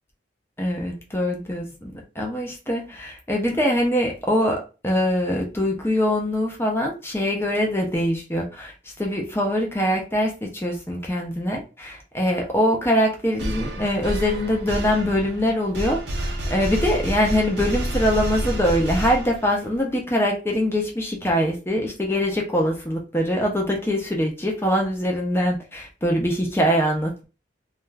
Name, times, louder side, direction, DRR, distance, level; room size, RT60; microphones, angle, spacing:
voice 1, 0.6-8.7 9.0-27.2, equal, 15° left, 1 dB, 0.5 m, -23 dB
sound 1, 13.4-19.7, right 1 dB, 65° right, 0.6 m, -29 dB
2.3 x 2.2 x 3.2 m, 0.32 s
head